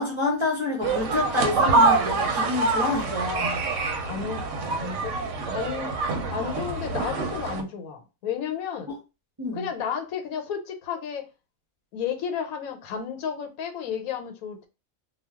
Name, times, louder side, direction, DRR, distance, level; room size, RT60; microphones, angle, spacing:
voice 1, 0.0-3.6 8.9-9.0 9.4-9.7, left 3 dB, 30° right, 0.5 m, -28 dB
sound 1, 0.8-7.6, right 3 dB, 65° right, 0.8 m, -25 dB
voice 2, 4.0-5.1 5.5-8.9 9.5-11.3 11.9-14.7, left 7 dB, 80° left, 1.1 m, -32 dB
2.3 x 2.2 x 3.4 m
omnidirectional pair, 1.5 m